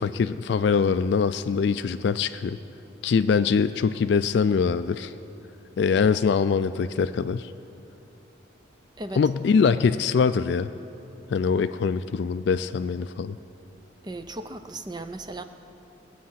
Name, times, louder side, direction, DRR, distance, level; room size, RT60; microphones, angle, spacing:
voice 1, 0.0-2.6 3.0-5.1 5.8-7.5 9.2-10.7 11.3-13.4, left 5 dB, 60° left, 11 dB, 0.3 m, -23 dB
voice 2, 14.0-15.4, right 2 dB, 20° right, 8 dB, 0.6 m, -36 dB
20.5 x 8.5 x 5.7 m, 3.0 s
head